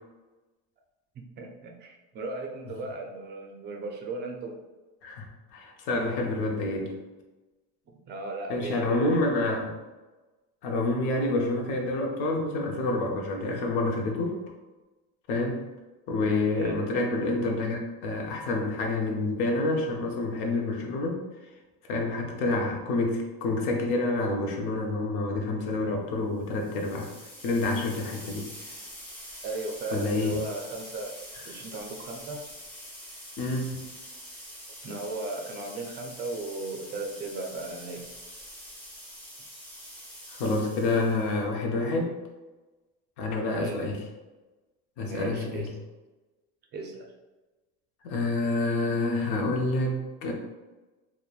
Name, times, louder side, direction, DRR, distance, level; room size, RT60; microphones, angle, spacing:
voice 1, 1.2-4.6 7.9-9.1 16.6-16.9 29.4-31.1 31.4-32.4 34.8-38.1 43.6-43.9 45.0-45.7 46.7-47.1, right 2 dB, 35° right, 2 dB, 0.4 m, -36 dB
voice 2, 5.0-6.9 8.5-9.7 10.6-14.4 15.3-15.6 16.1-21.2 21.9-27.1 27.4-28.7 29.9-30.4 33.4-33.9 40.3-42.1 43.2-44.0 45.0-45.7 48.0-50.3, left 2 dB, 80° left, 1 dB, 0.7 m, -28 dB
sound 1, 26.5-41.4, equal, 5° left, 0.6 m, -45 dB
3.0 x 2.1 x 2.3 m, 1.2 s
cardioid pair, 130°, 29 cm